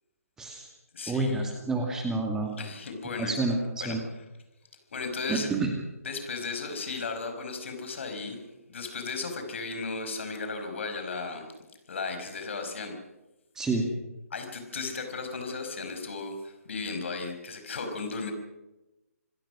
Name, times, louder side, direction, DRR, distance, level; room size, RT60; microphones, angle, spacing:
voice 1, 0.4-0.7 1.1-2.5 3.2-4.0 5.3-5.7 13.6-13.9, right 3 dB, 5° right, 2 dB, 2.2 m, -29 dB
voice 2, 0.9-1.5 2.4-3.4 3.8-4.0 4.9-5.5 6.0-8.4 8.7-11.5 11.9-12.9 14.3-18.3, left 4 dB, 50° left, 6 dB, 5.3 m, -35 dB
26.5 x 16.5 x 6.2 m, 1.0 s
figure-of-eight pair, 140°, 8 cm